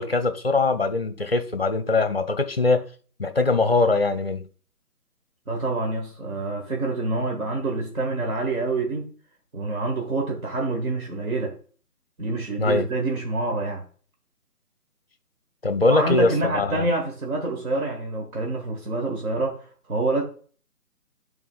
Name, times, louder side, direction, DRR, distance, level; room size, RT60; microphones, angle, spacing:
voice 1, 0.0-2.9 3.2-4.4 12.6-12.9 15.6-16.9, left 3 dB, 40° left, 0.5 m, -22 dB
voice 2, 5.5-9.1 9.5-11.5 12.2-13.8 15.9-19.5 19.9-20.2, right 2 dB, 65° right, 1.4 m, -26 dB
11.0 x 3.8 x 2.3 m
figure-of-eight pair, 155°, 47 cm